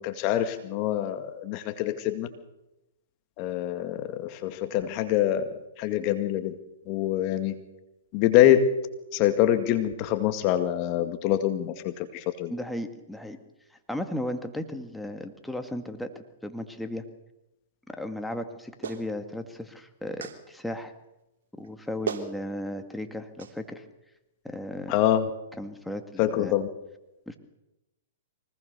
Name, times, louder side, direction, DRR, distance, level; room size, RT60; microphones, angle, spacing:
voice 1, 0.0-2.3 3.4-5.5 5.8-6.5 6.9-7.6 8.1-8.7 9.1-12.5 24.9-25.2 26.2-26.7, left 12 dB, 40° left, 9 dB, 2.0 m, -25 dB
voice 2, 12.5-13.4 13.7-17.0 17.9-20.9 21.6-23.9 24.4-25.0 25.6-26.5 27.3-27.4, left 1 dB, 5° left, 6 dB, 2.0 m, -35 dB
Clapping, 18.8-19.1 20.2-20.4 21.6-21.7 22.1-22.3 23.4-23.5, right 6 dB, 65° right, 3.5 m, -33 dB
24.5 x 19.5 x 6.8 m, 0.96 s
hypercardioid pair, 125°, 0 cm